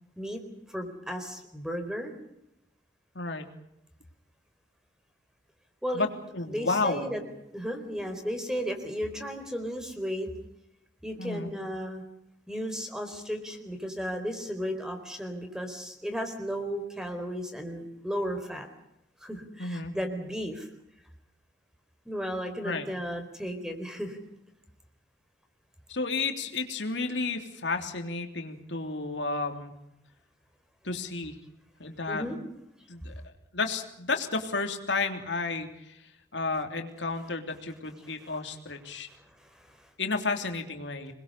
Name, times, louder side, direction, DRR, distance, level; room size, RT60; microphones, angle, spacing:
voice 1, 0.7-2.1 5.8-6.1 6.5-7.2 7.5-10.3 11.0-12.0 12.5-18.7 19.2-20.7 22.0-24.2 32.1-32.4 38.0-38.1 38.9-39.9, equal, 5° right, 6 dB, 4.2 m, -34 dB
voice 2, 3.1-3.5 5.9-6.1 6.3-7.1 11.2-11.5 19.6-19.9 22.6-22.9 25.9-29.7 30.8-31.4 31.8-32.3 32.9-33.1 33.5-36.0 36.3-39.1 40.0-41.1, left 3 dB, 80° left, 5 dB, 3.3 m, -32 dB
27.0 x 21.5 x 6.9 m, 0.83 s
head